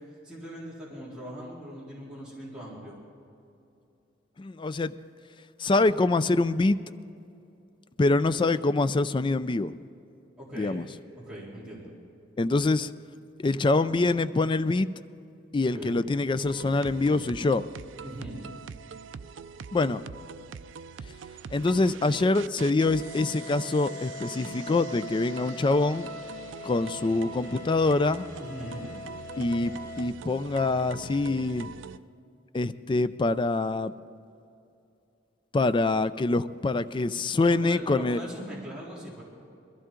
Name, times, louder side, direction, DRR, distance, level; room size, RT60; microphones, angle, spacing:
voice 1, 0.0-3.0 10.4-10.8 11.2-11.9 15.7-16.0 18.0-18.4 28.4-28.9 37.5-39.2, equal, 5° right, -8 dB, 3.7 m, -40 dB
voice 2, 4.4-4.9 5.6-6.8 8.0-9.7 10.6-10.9 12.4-12.9 13.4-14.9 15.5-17.7 19.7-20.0 21.5-26.1 26.6-28.3 29.4-31.7 32.5-33.9 35.5-38.2, left 2 dB, 25° left, 13 dB, 0.4 m, -25 dB
sound 1, 16.4-32.0, right 5 dB, 80° right, 0.4 m, -43 dB
sound 2, 22.8-30.1, left 3 dB, 50° left, 1.6 m, -43 dB
21.5 x 15.0 x 3.8 m, 2.7 s
head